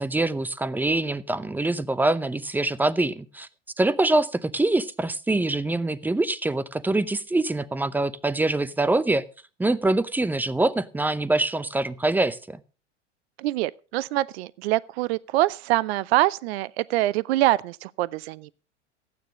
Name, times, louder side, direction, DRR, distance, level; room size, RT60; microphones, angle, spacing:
voice 1, 0.0-3.5 3.8-9.2 9.6-12.6, right 2 dB, 5° right, 0.7 m, -24 dB
voice 2, 13.4-18.5, right 17 dB, 55° right, 0.7 m, -24 dB
14.5 x 9.6 x 5.1 m
hypercardioid pair, 95°, 37 cm